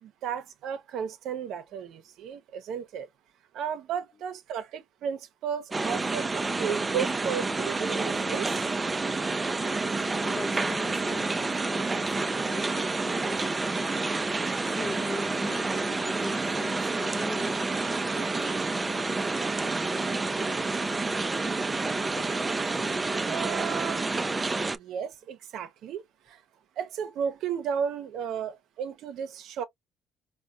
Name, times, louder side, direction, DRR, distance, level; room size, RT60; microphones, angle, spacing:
voice 1, 0.0-3.1 3.5-8.7 18.5-18.6 19.4-19.6 21.5-21.6 22.1-22.2 23.2-24.1 24.7-26.4 26.8-29.6, right 7 dB, 70° right, 0.7 m, -34 dB
sound 1, 5.7-24.8, right 3 dB, 20° right, 0.4 m, -29 dB
sound 2, 7.4-7.8 8.2-8.8 9.1-10.4 10.8-11.1 11.6-12.2 12.4-13.7 14.0-14.5 15.0-16.9 17.4-17.8 18.1-18.6 18.9-20.1 20.3-20.9 21.2-21.7 22.2-22.6 22.9-23.4 23.7-24.3, left 6 dB, 75° left, 0.7 m, -52 dB
voice 2, 10.2-17.7, left 2 dB, 30° left, 0.6 m, -41 dB
4.2 x 2.2 x 2.4 m
cardioid pair, 95°, 0 cm